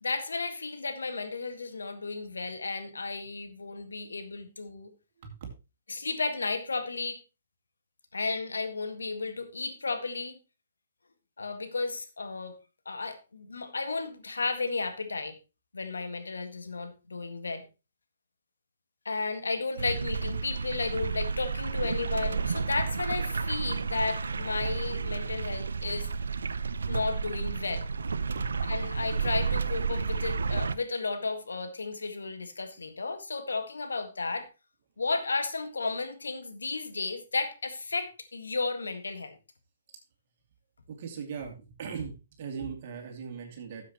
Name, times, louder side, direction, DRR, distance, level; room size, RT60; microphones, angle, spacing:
voice 1, 0.0-4.9 5.9-7.2 8.1-10.4 11.4-12.5 12.9-15.4 15.7-17.6 19.1-26.1 26.9-27.9 28.7-34.5 35.0-39.4, left 3 dB, 85° left, 1.7 m, -33 dB
sound 1, 19.8-30.7, right 5 dB, 80° right, 0.6 m, -31 dB
voice 2, 40.9-42.1 42.4-43.9, right 6 dB, 50° right, 2.7 m, -39 dB
13.0 x 7.6 x 3.0 m
hypercardioid pair, 135°, 0 cm